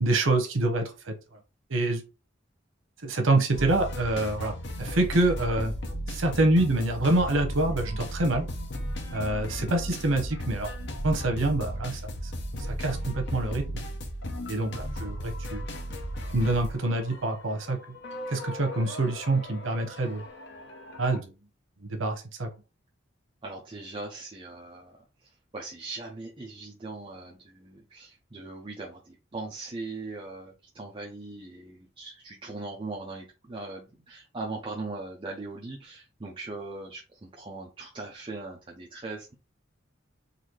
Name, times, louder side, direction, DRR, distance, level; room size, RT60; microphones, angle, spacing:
voice 1, 0.0-1.1 1.7-2.0 3.0-5.7 6.1-8.5 9.1-10.7 11.0-12.1 12.7-13.8 14.5-15.6 16.3-17.8 18.3-20.2 21.0-21.3 21.9-22.5, right 2 dB, 90° right, 5 dB, 0.9 m, -26 dB
sound 1, 3.5-21.2, equal, 60° left, 0.8 m, -36 dB
voice 2, 23.4-25.0 25.5-39.3, right 3 dB, 25° right, -1 dB, 0.6 m, -40 dB
4.0 x 2.6 x 3.1 m, 0.30 s
head